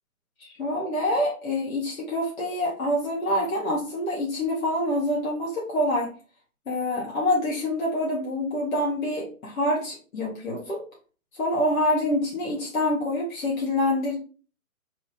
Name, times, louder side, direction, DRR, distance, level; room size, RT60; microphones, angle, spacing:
voice 1, 0.4-6.1 6.7-10.8 11.3-14.2, left 1 dB, 70° left, -3 dB, 1.2 m, -26 dB
3.0 x 2.3 x 3.6 m, 0.38 s
hypercardioid pair, 155°, 43 cm